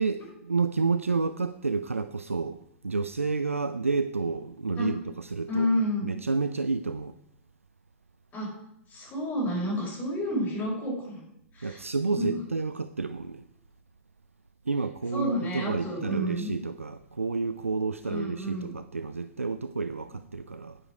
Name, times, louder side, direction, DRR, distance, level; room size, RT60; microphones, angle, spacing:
voice 1, 0.0-5.7 6.0-7.1 11.6-13.4 14.7-20.8, right 4 dB, 80° right, 12 dB, 0.4 m, -30 dB
voice 2, 5.5-6.1 8.3-8.5 8.9-11.2 11.5-11.8 12.2-12.4 15.1-16.5 18.0-18.7, left 1 dB, 20° left, -3 dB, 5.4 m, -30 dB
10.0 x 9.8 x 4.7 m, 0.80 s
figure-of-eight pair, 95°, 7 cm